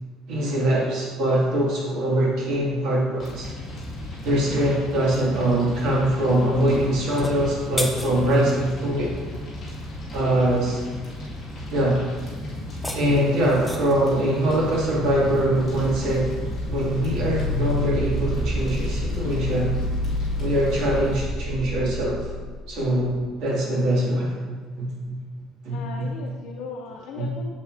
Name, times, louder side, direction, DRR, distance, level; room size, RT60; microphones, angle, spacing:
voice 1, 0.3-3.5 4.2-9.1 10.1-10.8 11.7-12.0 12.9-16.4 16.7-19.8 20.4-22.3 22.7-25.2 25.6-26.1 27.2-27.3, right 1 dB, 65° right, -4 dB, 2.2 m, -23 dB
Fire, 3.2-21.2, left 1 dB, 20° left, 1.9 m, -35 dB
voice 2, 4.3-4.6 13.1-13.3 25.7-27.5, left 4 dB, 80° left, -1 dB, 0.7 m, -38 dB
sound 1, 7.0-8.6 12.6-14.1, left 1 dB, ahead, 0.5 m, -34 dB
sound 2, 15.0-23.2, left 1 dB, 20° right, 1.3 m, -29 dB
7.4 x 7.3 x 2.6 m, 1.4 s
cardioid pair, 175°, 0 cm